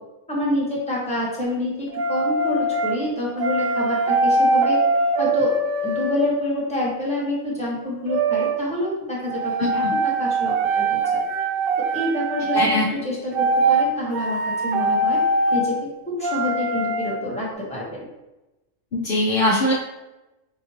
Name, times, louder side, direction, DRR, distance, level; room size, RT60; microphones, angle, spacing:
voice 1, 0.3-4.8 5.2-5.5 5.8-11.0 11.9-15.2 15.5-15.7 16.2-17.9, left 1 dB, 5° left, -6 dB, 1.3 m, -27 dB
sound 1, 1.9-3.0 3.4-6.5 8.1-8.6 9.3-12.7 13.3-13.9 14.1-15.6 16.2-17.1, right 2 dB, 70° right, 0.5 m, -22 dB
voice 2, 12.5-12.8 18.9-19.7, left 1 dB, 50° left, -7 dB, 0.8 m, -20 dB
5.7 x 2.6 x 3.0 m, 1.0 s
omnidirectional pair, 1.4 m